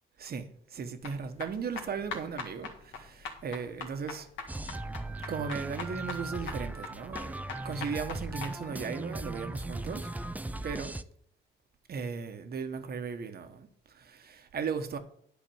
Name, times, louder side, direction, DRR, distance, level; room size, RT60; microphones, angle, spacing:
voice 1, 0.2-4.3 5.2-10.1 10.6-10.9 11.9-15.0, right 5 dB, 50° right, 1.3 m, -37 dB
sound 1, 1.0-8.5, left 4 dB, 75° left, 1.8 m, -42 dB
sound 2, 4.5-11.0, right 2 dB, 10° right, 0.5 m, -38 dB
10.5 x 4.3 x 7.1 m
cardioid pair, 90°, 20 cm